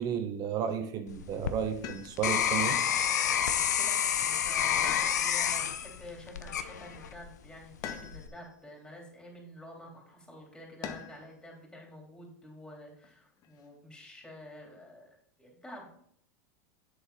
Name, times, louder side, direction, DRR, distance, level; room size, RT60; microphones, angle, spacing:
voice 1, 0.0-2.8, right 8 dB, 45° right, 9 dB, 0.9 m, -33 dB
sound 1, 1.1-7.3 7.8-8.3, left 9 dB, 90° left, 0.7 m, -29 dB
sound 2, 1.8-2.5 4.8-5.6 7.8-8.5 10.8-11.3 13.0-13.7, left 8 dB, 45° left, 1.1 m, -43 dB
voice 2, 3.6-3.9 4.2-15.9, left 1 dB, 5° left, -1 dB, 3.5 m, -49 dB
8.3 x 7.2 x 4.1 m, 0.65 s
hypercardioid pair, 110°, 9 cm